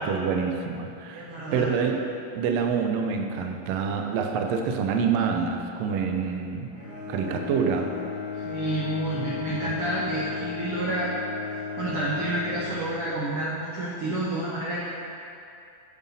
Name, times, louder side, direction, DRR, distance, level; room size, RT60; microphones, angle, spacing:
voice 1, 0.0-2.0 2.3-6.7 7.1-7.9 9.6-9.7, right 6 dB, 90° right, 4 dB, 1.4 m, -27 dB
voice 2, 1.1-1.7 8.3-11.1 11.8-14.8, right 2 dB, 70° right, -5 dB, 1.4 m, -29 dB
Bowed string instrument, 6.7-13.4, left 6 dB, 50° right, 2.7 m, -35 dB
7.9 x 7.3 x 4.2 m, 2.6 s
omnidirectional pair, 3.7 m